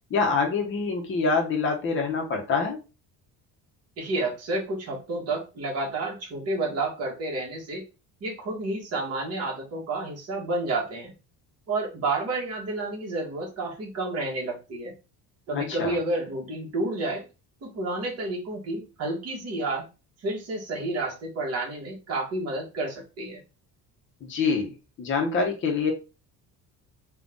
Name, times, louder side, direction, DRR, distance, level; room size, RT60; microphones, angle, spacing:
voice 1, 0.1-2.8 15.5-16.0 24.2-24.7 25.0-25.9, left 4 dB, 30° left, 1 dB, 1.0 m, -25 dB
voice 2, 4.0-7.8 8.2-11.1 11.7-14.9 15.5-17.2 17.6-19.9 20.2-23.4, right 2 dB, 40° right, -2 dB, 1.8 m, -30 dB
3.9 x 2.5 x 3.6 m, 0.30 s
cardioid pair, 165°, 37 cm